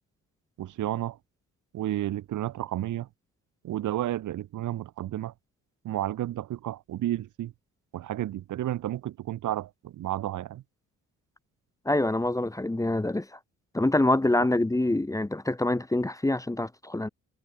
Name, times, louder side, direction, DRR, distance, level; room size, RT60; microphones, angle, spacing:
voice 1, 0.6-1.2 1.7-3.1 3.6-5.3 5.8-7.5 7.9-10.6, right 13 dB, 80° right, 3.4 m, -31 dB
voice 2, 11.8-13.4 13.7-17.1, left 2 dB, 10° left, 1.6 m, -25 dB
cardioid pair, 90°, 30 cm